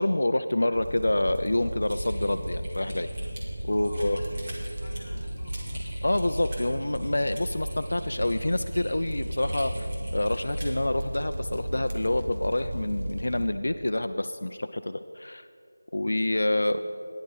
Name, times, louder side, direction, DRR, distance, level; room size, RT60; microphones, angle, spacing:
voice 1, 0.0-3.1 3.6-4.2 6.0-9.9 10.1-15.5 15.9-16.8, left 1 dB, 80° left, 9 dB, 0.5 m, -27 dB
sound 1, 0.7-13.4, right 1 dB, 65° right, 2.0 m, -34 dB
Typing, 1.9-10.8, right 1 dB, 25° right, 1.9 m, -43 dB
voice 2, 3.7-4.5 4.8-5.7 16.5-16.9, left 1 dB, 25° left, -8 dB, 2.9 m, -48 dB
16.0 x 10.5 x 4.1 m, 2.5 s
figure-of-eight pair, 175°, 0 cm